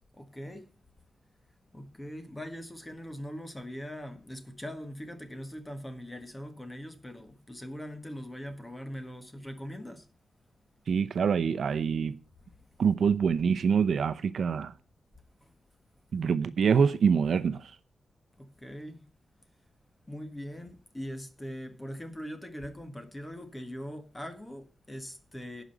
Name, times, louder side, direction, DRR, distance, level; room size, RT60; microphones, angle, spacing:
voice 1, 0.1-0.7 1.7-10.1 13.0-13.1 15.4-15.5 18.4-19.1 20.1-25.6, equal, 15° left, 1.5 m, -41 dB
voice 2, 10.9-12.2 12.8-14.7 16.1-17.7, right 6 dB, 70° right, 0.7 m, -25 dB
11.0 x 5.1 x 7.9 m
wide cardioid pair, 140°, 0 cm